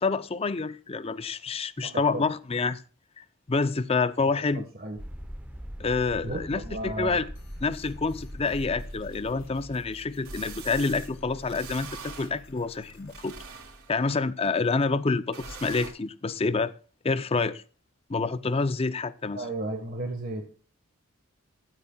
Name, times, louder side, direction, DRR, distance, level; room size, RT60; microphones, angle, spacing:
voice 1, 0.0-2.8 3.2-4.6 5.8-7.3 7.6-13.3 13.9-16.7 17.0-17.6 18.1-19.4, left 4 dB, 25° left, 0.5 m, -28 dB
voice 2, 1.8-2.2 4.2-5.0 6.2-7.2 19.3-20.5, right 2 dB, 45° right, 1.4 m, -34 dB
sound 1, 5.0-9.8, equal, 5° right, 0.8 m, -41 dB
sound 2, 7.3-13.2, left 1 dB, 75° left, 3.3 m, -48 dB
sound 3, 9.1-9.2 10.2-11.1 11.5-12.3 12.9-14.0 15.3-15.9, right 4 dB, 80° right, 3.4 m, -42 dB
15.5 x 12.0 x 2.3 m
head